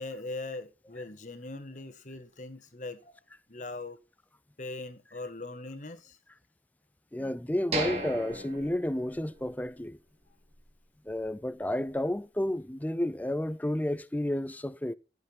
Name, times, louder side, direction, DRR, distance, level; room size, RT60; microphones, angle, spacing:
voice 1, 0.0-3.1 3.5-4.0 4.6-6.2, left 2 dB, 45° left, 1.4 m, -40 dB
voice 2, 7.1-10.0 11.1-14.9, left 1 dB, 10° left, 0.4 m, -31 dB
sound 1, 7.7-9.7 10.0-10.1 10.6-10.8, right 1 dB, 35° right, 2.6 m, -35 dB
14.0 x 6.7 x 4.2 m
head